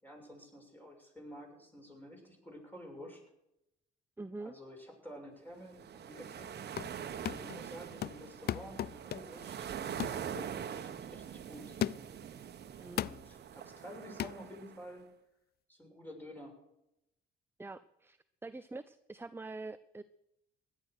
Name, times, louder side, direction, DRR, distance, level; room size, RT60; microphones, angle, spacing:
voice 1, 0.0-3.2 4.4-6.5 7.3-11.8 12.9-15.1 15.7-16.6, equal, 10° left, 1 dB, 6.8 m, -50 dB
voice 2, 4.2-4.5 12.8-13.0 17.6-20.0, right 3 dB, 10° right, 13 dB, 0.6 m, -45 dB
sound 1, 5.6-14.9, right 8 dB, 55° right, 1.3 m, -44 dB
sound 2, 6.5-7.0 7.2-7.6 8.0-9.4 10.0-10.2 10.7-10.9 11.8-12.2 13.0-13.3 14.2-14.4, left 12 dB, 55° left, 0.5 m, -37 dB
16.5 x 11.5 x 6.4 m, 0.86 s
supercardioid pair, 65°, 20 cm